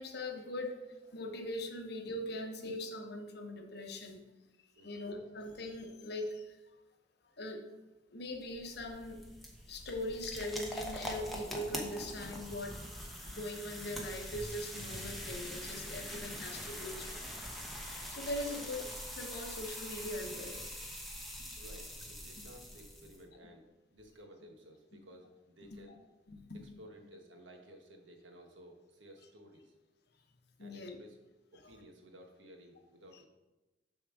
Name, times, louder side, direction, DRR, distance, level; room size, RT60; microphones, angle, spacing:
voice 1, 0.0-4.2 4.8-6.6 7.4-7.7 8.1-9.2 9.7-12.8 13.2-17.2 18.1-18.8 19.1-20.6 21.0-21.2 26.3-26.6 30.6-31.0 33.1-33.2, left 1 dB, 60° left, 4 dB, 0.8 m, -41 dB
sound 1, 8.3-23.2, equal, ahead, 0.9 m, -43 dB
voice 2, 21.6-26.0 26.8-29.7 30.6-31.2 31.5-33.2, equal, 90° right, 3 dB, 1.2 m, -55 dB
6.9 x 3.6 x 6.3 m, 1.1 s
head